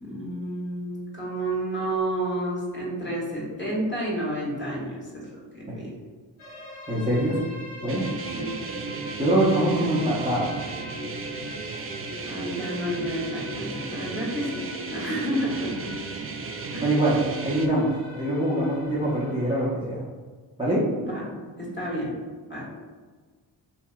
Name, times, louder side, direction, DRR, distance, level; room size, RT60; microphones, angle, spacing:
voice 1, 0.0-5.3 5.5-5.9 8.4-8.5 9.6-9.9 12.2-15.9 16.7-16.9 21.0-22.1 22.5-22.7, right 1 dB, 20° left, -6 dB, 1.3 m, -30 dB
sound 1, 6.4-19.7, equal, 75° left, 1.1 m, -42 dB
voice 2, 6.9-7.4 7.8-8.0 9.2-10.5 16.8-20.0 20.6-20.9, right 1 dB, 10° right, -9 dB, 0.9 m, -24 dB
sound 2, 7.9-17.7, right 4 dB, 30° right, 0.3 m, -35 dB
2.9 x 2.7 x 2.3 m, 1.4 s
supercardioid pair, 45°, 49 cm